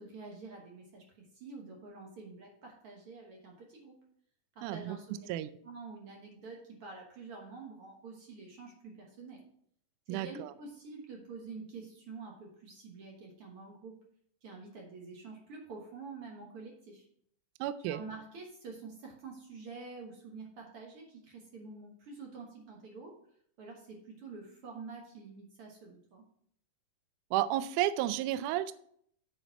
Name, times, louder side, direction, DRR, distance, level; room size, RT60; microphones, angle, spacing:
voice 1, 0.0-4.0 4.5-5.3 5.6-9.4 10.1-14.0 14.4-17.1 17.9-23.1 23.6-26.3, right 4 dB, 60° right, 0 dB, 1.5 m, -47 dB
voice 2, 4.6-5.0 5.3-5.5 10.1-10.5 17.6-18.0 27.3-28.7, right 13 dB, 90° right, 14 dB, 1.7 m, -32 dB
7.7 x 5.0 x 5.5 m, 0.65 s
omnidirectional pair, 4.1 m